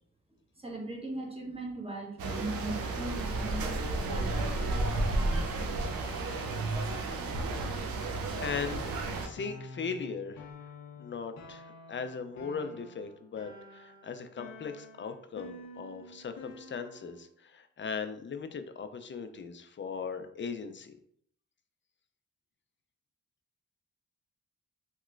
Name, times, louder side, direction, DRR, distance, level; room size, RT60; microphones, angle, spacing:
voice 1, 0.6-5.4, right 2 dB, 15° right, 0 dB, 1.0 m, -39 dB
sound 1, 2.2-9.3, right 2 dB, 90° right, 0.5 m, -32 dB
voice 2, 6.5-7.0 8.4-10.5 11.0-20.9, left 5 dB, 35° left, 9 dB, 0.4 m, -39 dB
sound 2, 9.4-17.2, left 2 dB, 85° left, 0.7 m, -49 dB
3.0 x 2.9 x 2.5 m, 0.66 s
cardioid pair, 50°, 34 cm